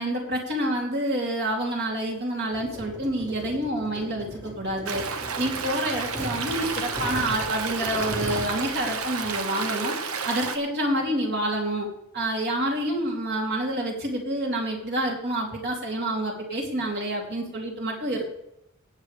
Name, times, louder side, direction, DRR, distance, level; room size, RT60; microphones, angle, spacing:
voice 1, 0.0-5.0 5.4-9.9 10.2-11.9 12.1-18.2, right 1 dB, 50° right, 0 dB, 3.2 m, -28 dB
sound 1, 2.5-9.4, equal, 20° right, 1.7 m, -38 dB
Stream, 4.9-10.6, right 5 dB, 75° right, 1.1 m, -31 dB
18.0 x 8.5 x 3.5 m, 0.76 s
head